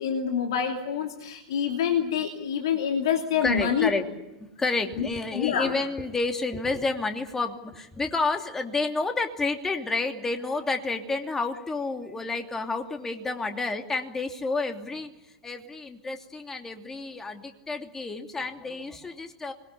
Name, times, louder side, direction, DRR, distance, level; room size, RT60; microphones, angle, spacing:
voice 1, 0.0-3.9 5.0-5.1 5.3-5.7, left 8 dB, 65° left, 3 dB, 2.8 m, -26 dB
voice 2, 3.4-4.1 4.4-15.1 15.4-19.5, left 3 dB, 15° left, 5 dB, 2.9 m, -30 dB
25.5 x 21.5 x 8.5 m, 1.0 s
figure-of-eight pair, 90°, 3 cm